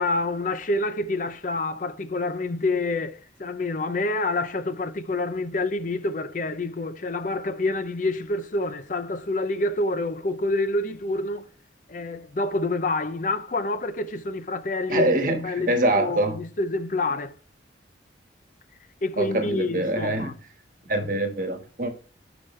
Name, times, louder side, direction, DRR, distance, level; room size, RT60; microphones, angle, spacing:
voice 1, 0.0-11.5 11.9-17.3 19.0-20.3, left 2 dB, 45° left, 0.5 m, -27 dB
voice 2, 14.9-16.4 19.2-20.4 20.9-21.9, right 1 dB, 45° right, 1.4 m, -24 dB
11.0 x 5.2 x 3.2 m
head